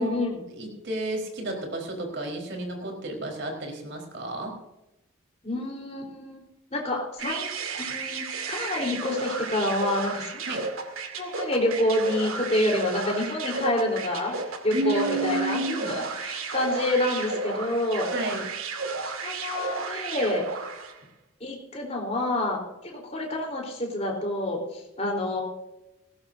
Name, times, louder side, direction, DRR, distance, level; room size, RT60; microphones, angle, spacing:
voice 1, 0.0-0.4 5.4-6.4 6.7-7.5 7.8-10.4 11.1-14.3 14.6-18.1 19.2-20.4 21.4-25.4, left 1 dB, 30° left, 0 dB, 3.9 m, -28 dB
voice 2, 0.6-4.5 10.5-10.6 14.7-15.9 18.1-18.4, right 2 dB, 55° right, 1 dB, 4.3 m, -31 dB
sound 1, 7.2-21.0, right 4 dB, 80° right, 2.2 m, -33 dB
19.0 x 17.5 x 2.7 m, 0.94 s
head